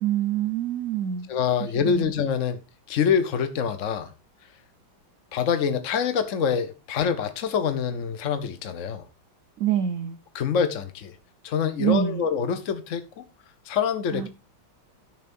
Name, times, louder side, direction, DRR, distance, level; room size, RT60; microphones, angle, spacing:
voice 1, 0.0-1.3 1.6-2.1 9.6-10.2 11.8-12.2 14.1-14.3, right 10 dB, 60° right, 0.9 m, -26 dB
voice 2, 1.3-2.6 2.9-4.1 5.3-9.0 10.3-11.2 11.4-13.2 13.6-14.3, left 7 dB, 55° left, 0.9 m, -25 dB
13.0 x 10.5 x 2.6 m
omnidirectional pair, 2.2 m